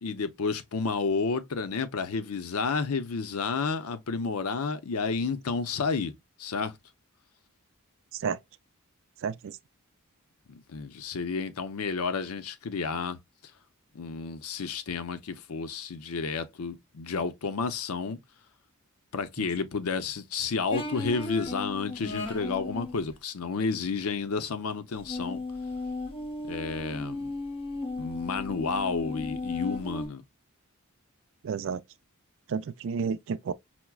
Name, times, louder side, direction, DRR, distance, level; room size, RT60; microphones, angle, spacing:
voice 1, 0.0-6.1 6.4-6.8 10.5-13.2 13.9-18.2 19.1-25.4 26.5-27.3 28.0-30.2, left 4 dB, 85° left, 0.6 m, -31 dB
voice 2, 9.2-9.6 31.4-31.8 32.5-33.5, right 6 dB, 60° right, 0.3 m, -31 dB
sound 1, 20.7-23.0 25.0-30.1, left 2 dB, 25° left, 0.8 m, -35 dB
5.8 x 2.1 x 2.3 m
head